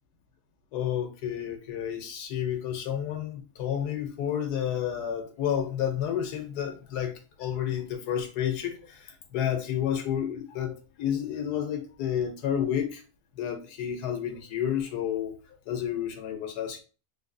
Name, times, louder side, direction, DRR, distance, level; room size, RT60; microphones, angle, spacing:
voice 1, 0.7-13.0 13.3-16.8, left 9 dB, 85° left, 5 dB, 1.3 m, -31 dB
3.6 x 2.6 x 2.6 m, 0.34 s
omnidirectional pair, 1.7 m